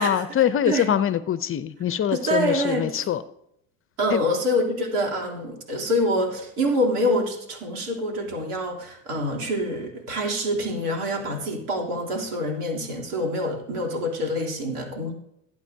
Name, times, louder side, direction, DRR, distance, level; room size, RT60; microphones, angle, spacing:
voice 1, 0.0-3.2 4.1-4.2, left 10 dB, 30° left, 14 dB, 0.5 m, -23 dB
voice 2, 2.1-3.1 4.0-15.1, equal, 80° right, 0 dB, 3.2 m, -26 dB
17.5 x 8.4 x 2.7 m, 0.76 s
hypercardioid pair, 90°, 46 cm